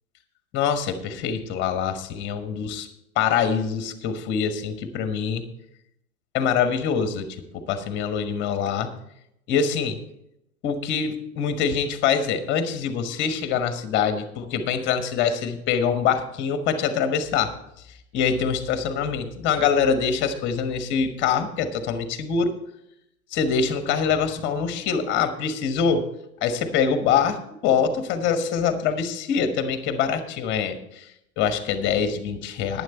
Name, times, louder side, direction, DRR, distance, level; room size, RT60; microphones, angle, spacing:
voice 1, 0.5-2.9 3.2-5.4 6.3-7.3 7.5-8.9 9.5-10.0 10.6-17.5 18.1-22.5 23.3-26.1 26.4-31.1 31.4-32.8, left 7 dB, 25° left, 10 dB, 1.2 m, -24 dB
11.0 x 9.7 x 4.4 m, 0.79 s
figure-of-eight pair, 100°, 45 cm